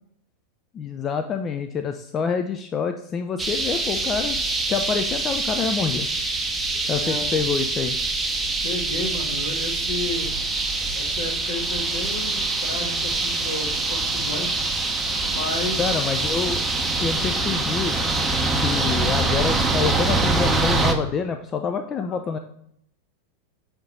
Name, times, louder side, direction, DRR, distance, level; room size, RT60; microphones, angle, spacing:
voice 1, 0.7-4.4 4.7-6.1 6.9-8.0 15.8-16.6 17.0-18.0 18.6-22.4, left 6 dB, 25° left, 7 dB, 0.4 m, -27 dB
sound 1, 3.4-20.9, right 3 dB, 10° right, 0.7 m, -24 dB
voice 2, 6.9-7.5 8.6-10.3 10.9-14.6 15.3-16.0, left 2 dB, 60° left, 1 dB, 1.5 m, -32 dB
7.0 x 3.7 x 4.1 m, 0.72 s
figure-of-eight pair, 90°, 0 cm